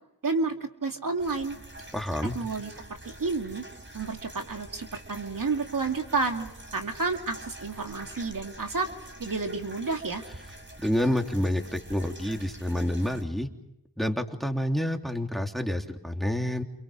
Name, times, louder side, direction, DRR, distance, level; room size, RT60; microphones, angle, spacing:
voice 1, 0.2-1.6 2.3-3.6 3.9-8.9 9.2-10.2, right 3 dB, 60° right, 4 dB, 2.6 m, -30 dB
sound 1, 1.2-13.2, right 1 dB, 30° right, 5.6 m, -46 dB
voice 2, 1.9-2.4 10.8-13.5 14.0-16.6, left 1 dB, ahead, 4 dB, 3.2 m, -28 dB
29.5 x 29.0 x 5.1 m, 0.85 s
cardioid pair, 45°, 36 cm